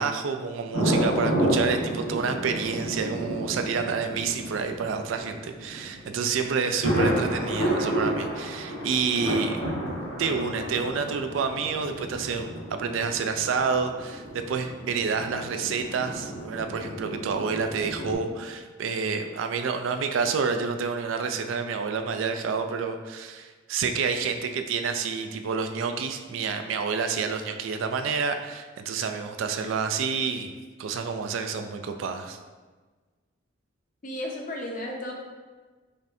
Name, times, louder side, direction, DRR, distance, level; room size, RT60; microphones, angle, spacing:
voice 1, 0.0-9.6 10.2-30.5 30.8-32.4, right 5 dB, 80° right, 7 dB, 0.3 m, -29 dB
sound 1, 0.7-18.1, right 1 dB, 85° left, 1.3 m, -31 dB
voice 2, 34.0-35.1, left 1 dB, 40° left, 0 dB, 0.6 m, -33 dB
5.1 x 2.6 x 2.6 m, 1.4 s
head